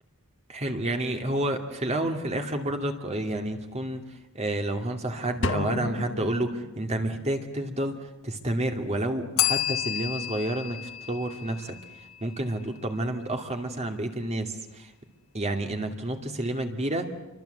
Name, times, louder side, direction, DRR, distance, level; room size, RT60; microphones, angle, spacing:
voice 1, 0.5-14.9 15.3-17.1, right 1 dB, 30° right, 5 dB, 2.6 m, -30 dB
sound 1, 5.4-7.2, left 3 dB, 60° left, 1.2 m, -32 dB
Bell, 9.4-12.2, left 13 dB, 75° left, 1.6 m, -30 dB
29.0 x 24.5 x 8.2 m, 0.99 s
head